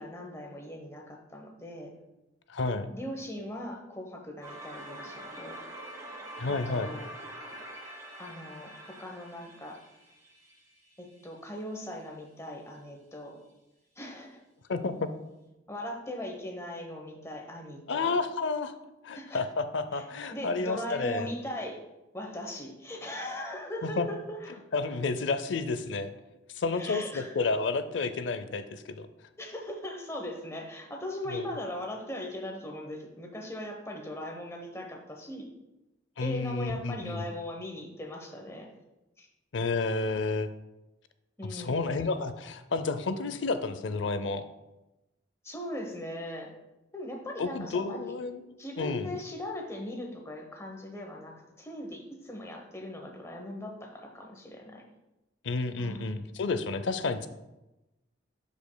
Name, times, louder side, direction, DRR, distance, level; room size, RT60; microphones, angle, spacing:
voice 1, 0.0-1.9 2.9-5.6 6.5-7.1 8.2-9.8 11.0-13.4 14.0-14.4 15.7-18.1 19.1-19.4 19.9-21.8 22.1-24.6 26.7-27.4 29.4-35.5 36.2-38.7 39.2-39.3 41.4-41.9 45.4-46.5 46.9-48.1 48.6-54.8 55.8-56.2, left 1 dB, 15° left, 2 dB, 0.9 m, -39 dB
voice 2, 2.5-2.9 6.4-6.9 14.7-15.1 17.9-18.7 19.0-21.3 23.8-24.1 24.7-26.1 26.6-29.1 31.3-31.5 36.2-37.2 39.5-40.5 41.4-44.4 47.4-48.4 48.8-49.1 55.4-57.3, left 3 dB, 85° left, 11 dB, 0.5 m, -31 dB
sound 1, 4.4-11.3, right 1 dB, 15° right, 1.2 m, -45 dB
11.5 x 5.1 x 2.2 m, 0.98 s
head